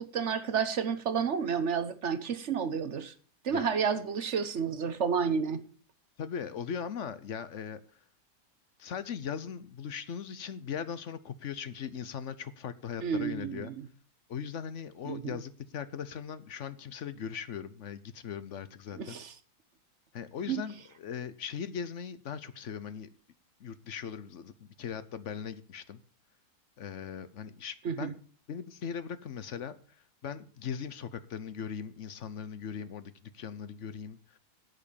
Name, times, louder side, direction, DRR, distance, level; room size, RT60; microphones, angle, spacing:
voice 1, 0.0-3.1 3.4-5.6 13.0-13.7 15.0-15.4 19.0-19.3 20.5-20.6 27.8-28.1, right 6 dB, 50° right, 1.1 m, -30 dB
voice 2, 6.2-7.8 8.8-13.7 14.3-19.2 20.1-23.1 23.6-26.0 26.8-28.2 28.5-29.8 30.2-34.4, left 7 dB, 55° left, 1.0 m, -39 dB
11.0 x 8.1 x 7.0 m
omnidirectional pair, 1.8 m